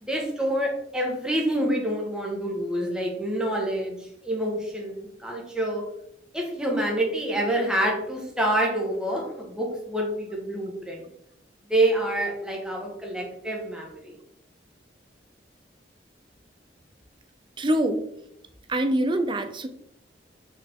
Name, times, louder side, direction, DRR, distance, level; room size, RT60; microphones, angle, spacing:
voice 1, 0.0-5.8 6.3-11.0 11.7-14.2, right 1 dB, 5° right, -1 dB, 1.5 m, -27 dB
voice 2, 17.6-18.0 18.7-19.7, right 1 dB, 25° right, 8 dB, 0.6 m, -24 dB
6.2 x 5.4 x 3.7 m, 0.77 s
head